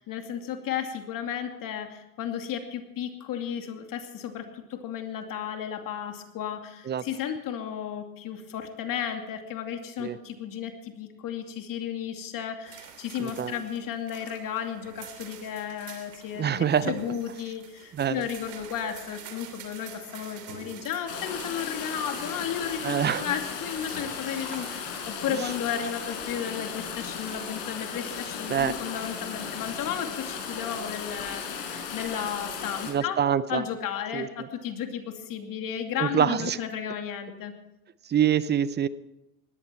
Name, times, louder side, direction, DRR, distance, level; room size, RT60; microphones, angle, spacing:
voice 1, 0.0-33.2 33.5-37.5, left 8 dB, 45° left, 5 dB, 2.6 m, -34 dB
sound 1, 12.6-25.2, right 7 dB, 85° right, 3.2 m, -47 dB
voice 2, 13.2-13.6 16.4-16.9 17.9-18.2 22.8-23.2 25.3-25.4 28.5-28.7 32.9-33.6 34.1-34.3 36.0-36.6 38.1-38.9, right 9 dB, 20° right, 17 dB, 0.6 m, -25 dB
sound 2, 21.1-32.9, left 6 dB, 65° left, 5.7 m, -36 dB
20.0 x 14.5 x 4.5 m, 0.90 s
hypercardioid pair, 100°, 47 cm